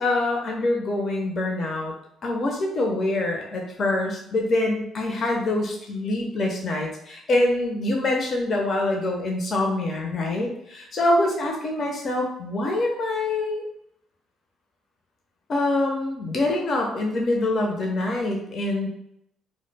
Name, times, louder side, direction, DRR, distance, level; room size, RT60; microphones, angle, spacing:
voice 1, 0.0-1.9 2.2-13.7 15.5-18.9, left 2 dB, 50° left, 0 dB, 0.6 m, -25 dB
2.1 x 2.1 x 3.2 m, 0.75 s
supercardioid pair, 70°, 0 cm